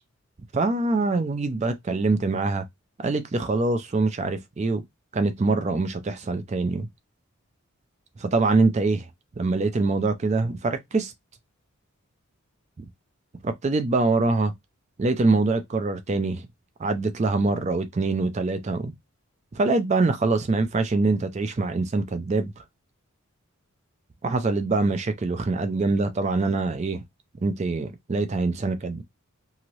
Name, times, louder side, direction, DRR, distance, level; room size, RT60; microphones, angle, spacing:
voice 1, 0.5-2.6 3.0-4.8 5.1-6.9 8.2-9.1 9.4-11.1 12.8-12.9 13.4-14.5 15.0-16.5 16.8-18.9 19.5-22.5 24.2-27.0 27.4-29.0, right 3 dB, 30° right, 0.4 m, -24 dB
2.8 x 2.5 x 3.1 m
head